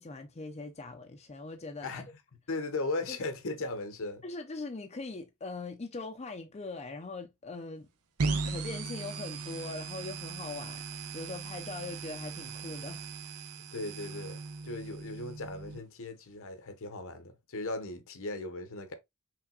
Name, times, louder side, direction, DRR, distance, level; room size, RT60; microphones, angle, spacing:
voice 1, 0.0-2.0 3.1-3.2 4.2-7.9 8.2-13.1, left 3 dB, 30° left, 0.6 m, -41 dB
voice 2, 2.5-4.2 13.7-19.0, left 2 dB, 65° left, 0.9 m, -37 dB
sound 1, 8.2-15.8, right 4 dB, 80° right, 0.7 m, -38 dB
5.9 x 3.4 x 2.3 m
head